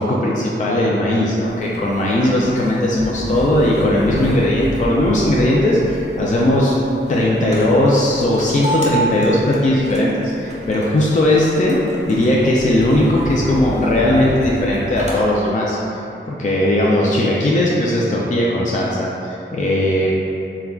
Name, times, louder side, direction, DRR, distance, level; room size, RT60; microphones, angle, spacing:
voice 1, 0.0-6.8 7.1-11.8 12.1-20.1, left 1 dB, 35° left, -4 dB, 0.4 m, -18 dB
sound 1, 1.5-15.2, equal, 35° right, 0.6 m, -29 dB
3.5 x 2.2 x 2.3 m, 2.8 s
wide cardioid pair, 40°, 21 cm